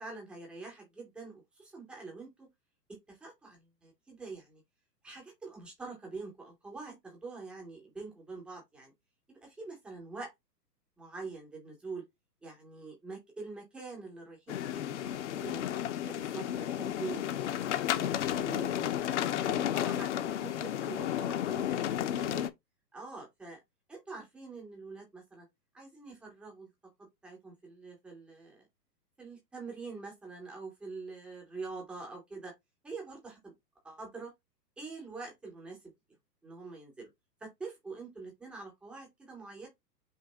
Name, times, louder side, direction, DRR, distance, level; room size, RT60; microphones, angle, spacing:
voice 1, 0.0-2.5 3.1-4.6 5.0-8.9 9.3-10.3 11.0-12.0 12.4-15.6 16.0-17.3 17.9-19.0 19.4-22.5 22.9-23.6 23.9-25.5 25.7-26.7 27.2-28.7 29.2-32.5 32.8-33.5 33.8-34.3 34.8-35.8 36.4-37.1 37.4-39.7, right 3 dB, ahead, 0.4 m, -45 dB
sound 1, 14.5-22.5, left 11 dB, 45° left, 0.6 m, -32 dB
5.3 x 2.6 x 3.8 m
hypercardioid pair, 125°, 50 cm